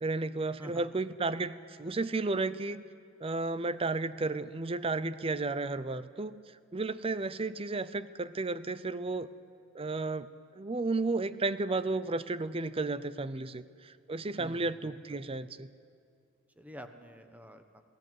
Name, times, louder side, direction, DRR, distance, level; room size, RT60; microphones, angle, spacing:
voice 1, 0.0-2.8 3.2-6.3 6.7-9.3 9.7-15.7, right 3 dB, 30° right, 15 dB, 0.6 m, -33 dB
voice 2, 14.4-15.2 16.6-17.8, equal, 5° right, 7 dB, 1.2 m, -49 dB
21.5 x 16.5 x 9.4 m, 2.3 s
head